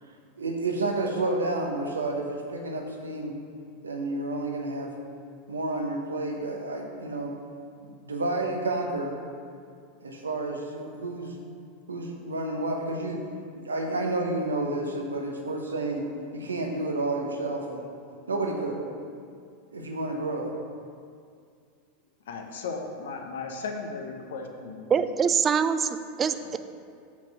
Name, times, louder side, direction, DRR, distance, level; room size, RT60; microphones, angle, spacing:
voice 1, 0.4-3.3 3.8-4.9 5.5-7.3 7.8-9.1 10.0-11.3 11.9-13.2 13.6-16.1 16.3-17.8 18.3-18.8 19.7-20.5, right 2 dB, 85° right, 2 dB, 0.8 m, -30 dB
voice 2, 22.3-25.0 26.4-26.5, left 4 dB, 70° left, 3 dB, 0.8 m, -36 dB
voice 3, 24.9-26.6, right 6 dB, 30° right, 11 dB, 0.4 m, -24 dB
5.8 x 4.3 x 6.0 m, 2.2 s
figure-of-eight pair, 90°, 0 cm